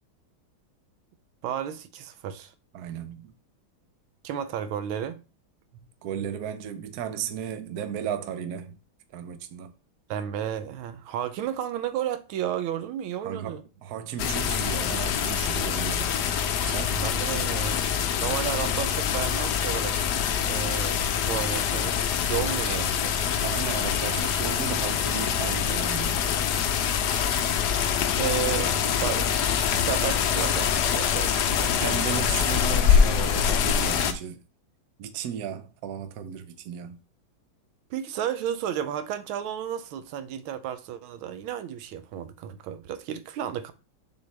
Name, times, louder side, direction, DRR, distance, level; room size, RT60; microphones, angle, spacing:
voice 1, 1.4-2.5 4.2-5.2 10.1-13.6 16.9-17.8 18.2-20.0 20.4-23.1 27.0-27.1 28.1-28.7 29.0-31.7 37.9-43.7, right 10 dB, 85° right, 1.5 m, -32 dB
voice 2, 2.7-3.3 6.0-8.8 9.1-9.7 13.2-16.1 16.7-17.1 23.4-26.2 31.8-34.4 35.0-37.0, right 8 dB, 60° right, 1.1 m, -35 dB
sound 1, 14.2-34.1, left 8 dB, 70° left, 1.1 m, -25 dB
6.9 x 4.3 x 3.2 m
omnidirectional pair, 2.2 m